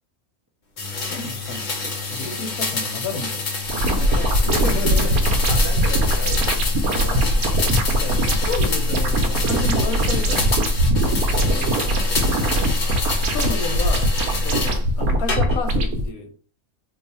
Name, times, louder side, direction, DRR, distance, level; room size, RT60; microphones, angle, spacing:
sound 1, 0.8-14.8 15.3-15.8, left 3 dB, 45° left, 0.6 m, -28 dB
voice 1, 1.1-3.5 4.4-5.1 7.1-7.3 8.0-10.6 13.3-16.3, left 3 dB, 90° left, 5 dB, 1.2 m, -31 dB
sound 2, 3.7-16.0, equal, 85° right, 1.1 m, -21 dB
voice 2, 3.8-4.5 4.9-7.3 11.0-13.2, equal, 30° right, -1 dB, 0.3 m, -35 dB
2.7 x 2.4 x 4.1 m, 0.39 s
omnidirectional pair, 1.5 m